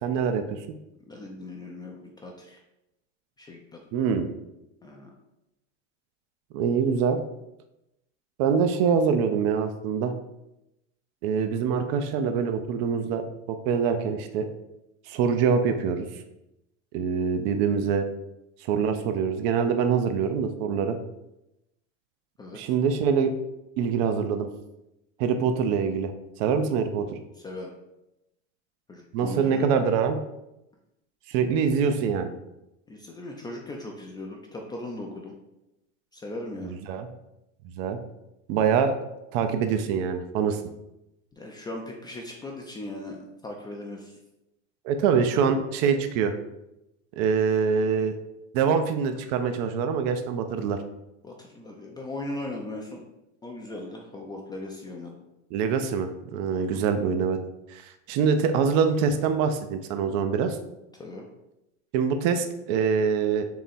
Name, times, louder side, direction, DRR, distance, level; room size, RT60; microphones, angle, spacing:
voice 1, 0.0-0.6 3.9-4.3 6.5-7.2 8.4-10.1 11.2-13.2 13.5-14.5 15.1-16.1 16.9-18.1 18.6-21.0 22.5-23.3 23.8-24.5 25.2-26.1 26.4-27.1 29.1-30.2 31.3-32.3 36.6-37.1 37.7-38.0 38.5-39.0 39.3-40.6 44.8-46.3 47.2-48.2 48.5-50.8 55.5-57.4 57.7-60.6 61.9-63.4, right 6 dB, 55° right, 8 dB, 0.6 m, -24 dB
voice 2, 1.1-2.6 3.4-3.8 4.8-5.1 22.4-22.6 27.4-27.7 28.9-29.7 32.9-35.3 36.1-36.8 41.3-44.2 45.0-45.5 51.2-53.0 53.4-55.2 56.5-56.8 60.9-61.3, left 2 dB, 10° left, -1 dB, 0.4 m, -38 dB
3.8 x 2.9 x 4.2 m, 0.90 s
supercardioid pair, 110°, 36 cm